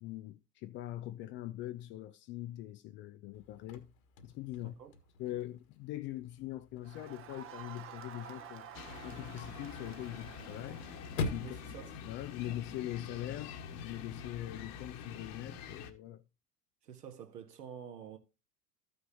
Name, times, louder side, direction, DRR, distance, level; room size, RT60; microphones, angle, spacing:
voice 1, 0.0-3.9 4.2-4.7 5.2-8.7 9.0-10.8 11.3-11.6 12.0-16.2, left 14 dB, 25° left, 0.4 m, -42 dB
Chirp tweet / Car / Slam, 3.3-13.3, left 3 dB, 60° left, 1.7 m, -46 dB
voice 2, 4.6-4.9 11.4-11.9 16.8-18.2, right 8 dB, 75° right, 1.8 m, -48 dB
Crowd, 6.8-11.6, right 8 dB, 25° right, 0.9 m, -51 dB
sound 1, 8.7-15.9, left 6 dB, 45° left, 1.4 m, -47 dB
14.0 x 6.4 x 2.8 m
figure-of-eight pair, 80°, 47 cm